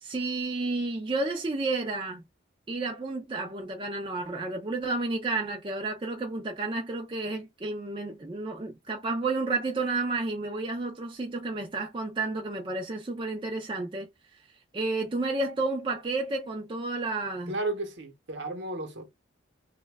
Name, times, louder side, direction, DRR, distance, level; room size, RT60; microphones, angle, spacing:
voice 1, 0.0-2.2 2.7-14.4 14.7-17.5, right 3 dB, 25° right, 0.4 m, -31 dB
voice 2, 17.5-19.1, right 2 dB, 60° right, 0.8 m, -33 dB
3.1 x 2.2 x 3.3 m
head